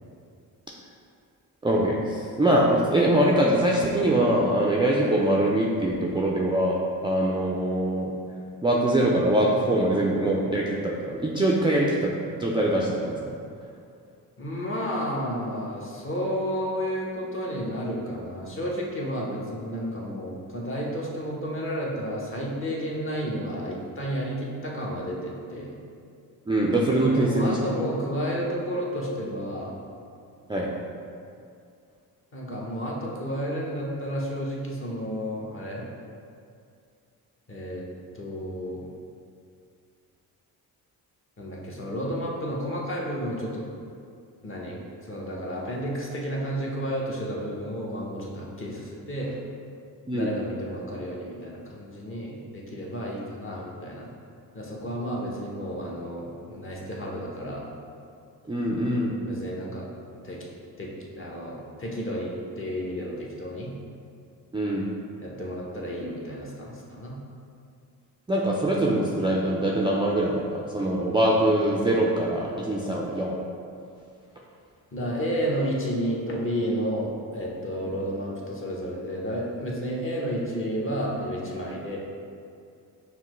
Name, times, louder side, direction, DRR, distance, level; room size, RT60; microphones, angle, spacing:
voice 1, 1.6-8.1 8.6-13.2 26.5-27.6 30.5-30.7 50.1-50.3 58.5-59.2 64.5-64.9 68.3-73.3, right 1 dB, 15° right, -4 dB, 0.4 m, -23 dB
voice 2, 14.4-25.7 27.0-29.7 32.3-35.9 37.5-37.8 38.1-38.9 41.4-43.6 44.4-49.4 50.1-54.1 54.5-57.7 59.2-60.5 60.8-60.9 61.2-63.7 65.2-67.2 74.9-82.0, equal, 30° left, -4 dB, 0.9 m, -31 dB
5.6 x 2.1 x 3.1 m, 2.4 s
supercardioid pair, 60°, 41 cm